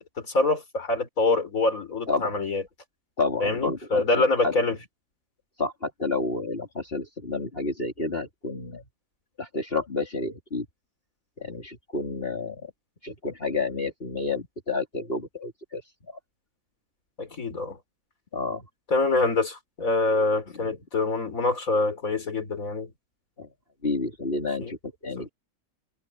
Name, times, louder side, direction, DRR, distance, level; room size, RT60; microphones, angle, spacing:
voice 1, 0.2-2.6 3.4-4.8 17.2-17.8 18.9-22.9 24.6-24.7 25.2-25.3, left 3 dB, 90° left, 3.9 m, -25 dB
voice 2, 3.2-4.6 5.6-8.8 9.4-10.7 11.4-12.7 13.0-15.8 18.3-18.6 20.6-20.7 23.4-23.5 23.8-24.8 25.0-25.3, left 3 dB, 45° left, 3.5 m, -30 dB
omnidirectional pair, 1.4 m